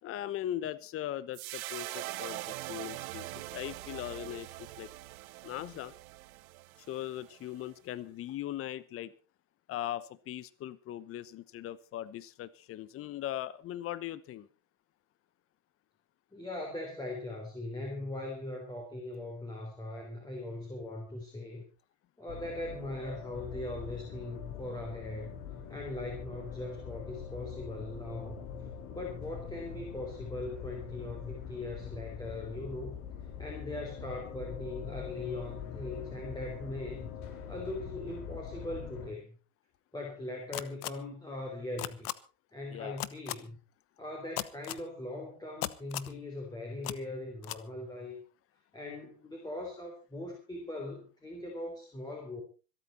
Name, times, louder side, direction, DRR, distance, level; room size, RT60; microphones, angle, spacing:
voice 1, 0.0-4.9 5.4-5.9 6.9-9.1 9.7-14.5 42.7-43.0, left 12 dB, 30° left, 17 dB, 1.0 m, -39 dB
sound 1, 1.3-7.7, right 20 dB, 65° right, 0.7 m, -43 dB
voice 2, 16.3-21.6 22.2-25.3 25.7-28.4 28.9-33.0 33.4-37.1 37.5-39.4 39.9-42.1 42.5-43.6 44.0-48.2 48.7-52.4, left 2 dB, 10° left, 0 dB, 3.8 m, -40 dB
sound 2, 22.3-39.1, left 7 dB, 45° left, 4.4 m, -43 dB
sound 3, 40.5-40.9 41.8-42.1 43.0-43.3 44.4-44.8 45.6-46.1 46.8-46.9 47.4-47.6, left 16 dB, 75° left, 1.1 m, -35 dB
26.0 x 8.9 x 4.3 m, 0.35 s
supercardioid pair, 120°, 46 cm